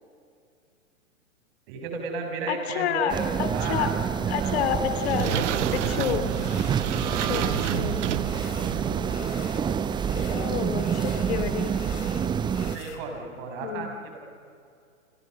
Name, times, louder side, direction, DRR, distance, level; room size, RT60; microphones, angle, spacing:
voice 1, 1.7-3.9 4.4-4.8 5.7-6.2 8.2-9.4 11.4-11.5 12.6-13.9, right 4 dB, 45° right, 3 dB, 6.5 m, -35 dB
voice 2, 2.5-3.9 4.3-6.2 7.0-8.0 10.3-11.7 13.6-13.9, left 9 dB, 50° left, 9 dB, 3.0 m, -29 dB
sound 1, 3.1-12.8, right 7 dB, 10° right, 0.8 m, -28 dB
sound 2, 4.6-9.5, right 11 dB, 60° right, 0.9 m, -31 dB
sound 3, 6.3-6.9 7.3-7.9 8.2-9.7 9.9-13.0, left 10 dB, 30° left, 2.8 m, -47 dB
29.5 x 26.5 x 6.5 m, 2.5 s
figure-of-eight pair, 110°, 40 cm